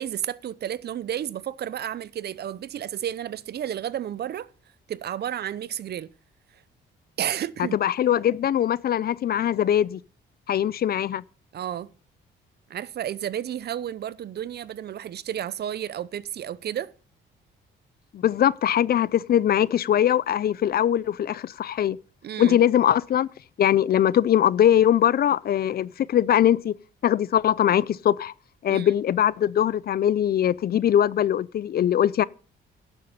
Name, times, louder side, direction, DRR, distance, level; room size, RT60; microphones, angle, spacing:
voice 1, 0.0-4.5 4.9-6.1 7.2-7.8 11.5-11.9 12.7-16.9 22.2-22.6 28.7-28.9, right 10 dB, 55° right, 0.6 m, -32 dB
voice 2, 7.7-10.0 10.5-11.2 18.1-22.0 22.4-23.3 23.6-26.7 27.0-28.3 28.6-32.2, left 10 dB, 50° left, 0.5 m, -21 dB
11.5 x 7.2 x 5.2 m
cardioid pair, 90°, 20 cm